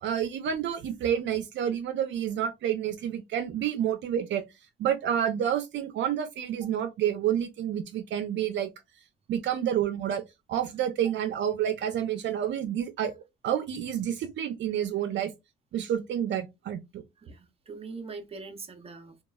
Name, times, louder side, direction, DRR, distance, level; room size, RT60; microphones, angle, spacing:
voice 1, 0.0-4.4 4.8-8.7 9.3-10.2 10.5-13.1 13.4-15.3 15.7-17.0, right 10 dB, 70° right, 0.5 m, -29 dB
voice 2, 17.2-19.2, right 4 dB, 30° right, 0.7 m, -42 dB
2.9 x 2.3 x 2.2 m
cardioid pair, 90°, 20 cm